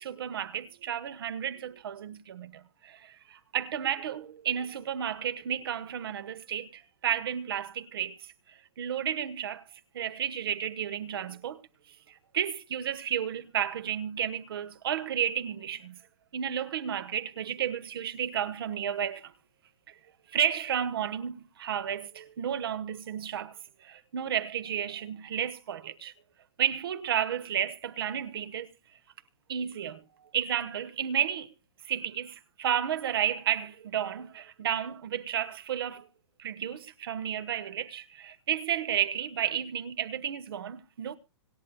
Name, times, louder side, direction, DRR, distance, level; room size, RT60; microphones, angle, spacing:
voice 1, 0.0-11.6 12.1-16.0 16.3-19.3 19.9-20.0 20.3-26.1 26.6-28.7 29.5-31.5 31.8-36.1 36.4-41.2, right 9 dB, 50° right, 1.1 m, -32 dB
26.0 x 8.9 x 2.2 m
hypercardioid pair, 165°, 15 cm